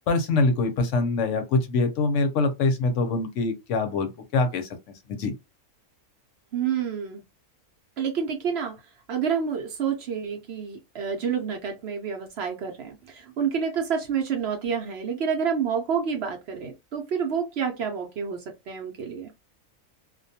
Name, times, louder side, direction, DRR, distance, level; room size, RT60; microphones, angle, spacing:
voice 1, 0.1-4.7 5.1-5.3, left 3 dB, 70° left, 0.9 m, -24 dB
voice 2, 6.5-7.2 8.0-8.7 9.1-19.3, right 7 dB, 60° right, 0.8 m, -28 dB
2.4 x 2.2 x 2.6 m
omnidirectional pair, 1.4 m